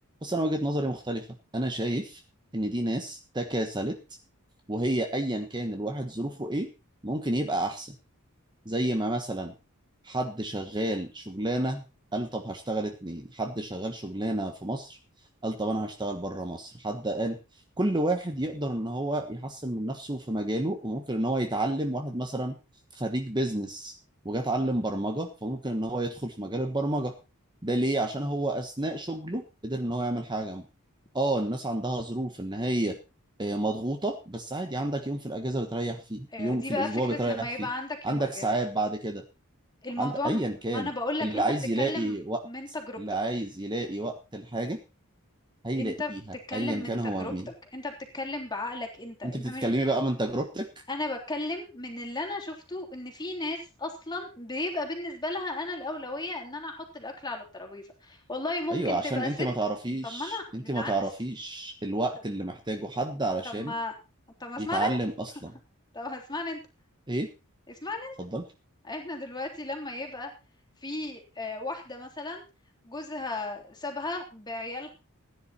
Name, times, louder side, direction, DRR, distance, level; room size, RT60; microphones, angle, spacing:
voice 1, 0.2-1.3 1.5-2.2 2.5-4.0 4.7-6.7 7.0-7.9 8.6-9.5 10.0-11.8 12.1-15.0 15.4-17.4 17.8-22.6 22.9-23.9 24.2-27.1 27.6-30.6 31.1-33.0 33.4-37.7 38.0-39.2 40.0-40.9 41.2-42.4 43.0-44.8 45.6-46.2 46.5-47.5 49.2-50.7 58.7-63.7 64.6-65.5 67.1-67.3 68.2-68.4, right 1 dB, 20° right, 5 dB, 1.3 m, -30 dB
voice 2, 36.3-38.4 39.8-40.4 40.7-41.4 41.8-42.1 42.4-43.0 45.7-46.1 46.5-47.3 47.7-49.8 50.9-59.3 60.0-60.9 63.4-63.9 64.4-64.9 65.9-66.6 67.7-68.2 68.8-70.3 70.8-72.4 72.8-74.9, left 2 dB, 20° left, 3 dB, 3.5 m, -35 dB
15.5 x 10.0 x 4.3 m, 0.30 s
head